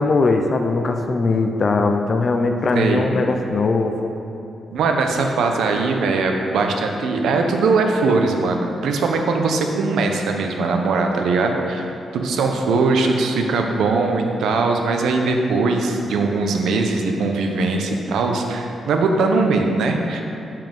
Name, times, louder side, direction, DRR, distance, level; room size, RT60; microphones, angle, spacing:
voice 1, 0.0-4.1, left 3 dB, 35° left, 4 dB, 0.4 m, -20 dB
voice 2, 4.7-20.2, right 3 dB, 90° right, 3 dB, 0.8 m, -20 dB
7.2 x 5.7 x 5.3 m, 2.8 s
wide cardioid pair, 160°, 0 cm